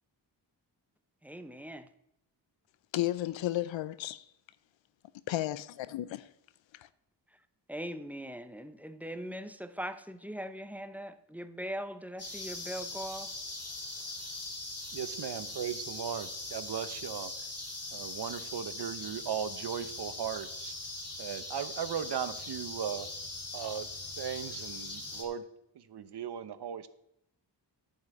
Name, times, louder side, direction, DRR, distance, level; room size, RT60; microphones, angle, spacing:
voice 1, 1.2-1.9 7.7-13.3, equal, 5° right, 0.7 m, -40 dB
voice 2, 2.9-4.2 5.3-6.3, left 14 dB, 90° left, 0.5 m, -33 dB
sound 1, 12.2-25.2, left 2 dB, 35° left, 2.7 m, -41 dB
voice 3, 14.9-17.3 17.9-20.7 21.2-23.1 23.5-23.9 24.2-25.4 25.7-26.9, right 8 dB, 60° right, 0.9 m, -37 dB
10.5 x 5.7 x 8.4 m
cardioid pair, 90°, 44 cm